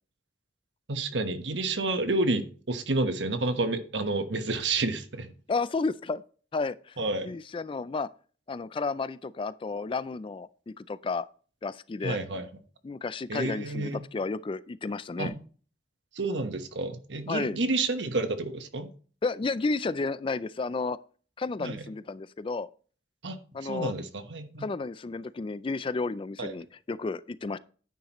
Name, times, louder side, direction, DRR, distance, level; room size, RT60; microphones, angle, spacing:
voice 1, 0.9-5.3 7.0-7.3 12.0-12.5 13.3-14.0 15.2-15.4 16.1-18.9 21.6-21.8 23.2-24.7 26.4-26.5, right 2 dB, 75° right, 1.2 m, -30 dB
voice 2, 5.5-6.2 6.5-7.0 7.2-8.1 8.5-11.3 11.6-12.2 12.8-15.3 17.3-17.6 19.2-21.0 21.4-22.7 23.5-23.9 24.6-27.6, left 3 dB, 30° left, 0.4 m, -32 dB
10.5 x 9.5 x 3.1 m
head